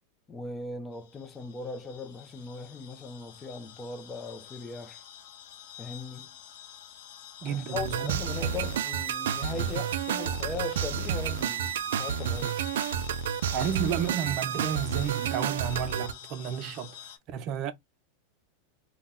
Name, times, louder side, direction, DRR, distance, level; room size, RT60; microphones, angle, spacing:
voice 1, 0.3-5.0 5.8-6.3 7.4-12.6, left 4 dB, 15° left, 0.4 m, -39 dB
sound 1, 0.9-17.2, left 11 dB, 70° left, 0.6 m, -47 dB
voice 2, 7.4-8.2 13.5-17.7, right 8 dB, 40° right, 0.6 m, -32 dB
sound 2, 7.8-16.1, right 8 dB, 85° right, 0.3 m, -30 dB
2.8 x 2.1 x 3.6 m
supercardioid pair, 145°, 0 cm